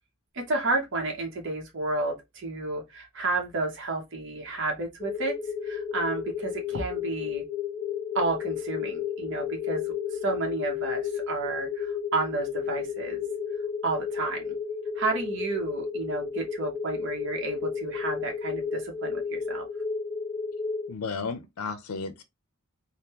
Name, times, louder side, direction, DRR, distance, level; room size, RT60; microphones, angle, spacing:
voice 1, 0.3-5.4 5.6-7.4 8.1-13.2 13.8-14.6 15.0-19.7, right 3 dB, 60° right, 0.8 m, -31 dB
sound 1, 5.0-20.9, left 6 dB, 30° left, 0.4 m, -32 dB
voice 2, 20.9-22.2, left 4 dB, 90° left, 0.5 m, -33 dB
3.6 x 2.1 x 2.8 m
head